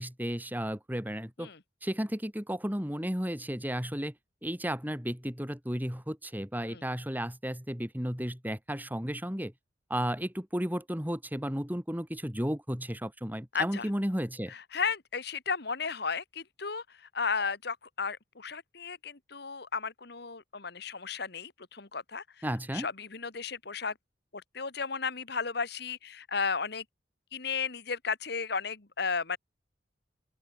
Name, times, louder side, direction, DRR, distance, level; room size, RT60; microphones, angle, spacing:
voice 1, 0.0-1.5 1.8-4.1 4.4-9.5 9.9-14.5 22.4-22.9, equal, 10° right, 4.3 m, -33 dB
voice 2, 13.5-13.9 14.7-16.8 17.1-22.2 22.7-23.9 24.3-26.8 27.3-29.4, left 5 dB, 65° left, 1.8 m, -34 dB
open air
head